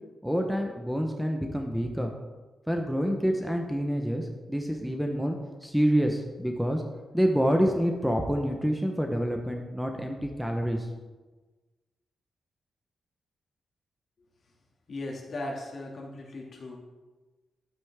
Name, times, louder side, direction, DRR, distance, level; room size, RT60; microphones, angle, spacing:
voice 1, 0.2-2.1 2.7-6.8 7.1-10.9, equal, ahead, 3 dB, 1.0 m, -27 dB
voice 2, 14.9-16.8, left 2 dB, 50° left, -1 dB, 2.3 m, -37 dB
11.5 x 9.0 x 3.6 m, 1.3 s
cardioid pair, 100°, 0 cm